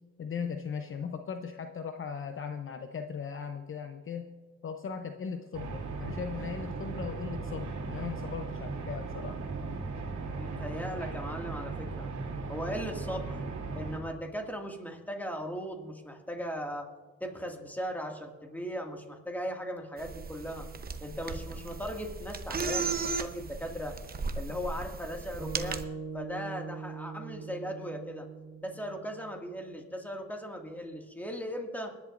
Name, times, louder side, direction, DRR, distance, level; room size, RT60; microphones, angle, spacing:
voice 1, 0.2-4.3 4.6-9.4, left 6 dB, 45° left, 6 dB, 0.8 m, -38 dB
sound 1, 5.5-14.0, right 3 dB, 75° right, 2.5 m, -37 dB
voice 2, 10.3-12.1 12.5-13.4 13.7-16.9 17.2-20.7 21.0-24.0 24.3-25.8 26.1-28.3 28.6-31.9, equal, 5° left, 2 dB, 2.1 m, -38 dB
sound 2, 20.0-25.8, right 4 dB, 30° right, 0.9 m, -36 dB
sound 3, 25.4-29.8, right 5 dB, 15° right, 1.3 m, -42 dB
23.5 x 10.5 x 2.6 m, 1.3 s
cardioid pair, 90°, 30 cm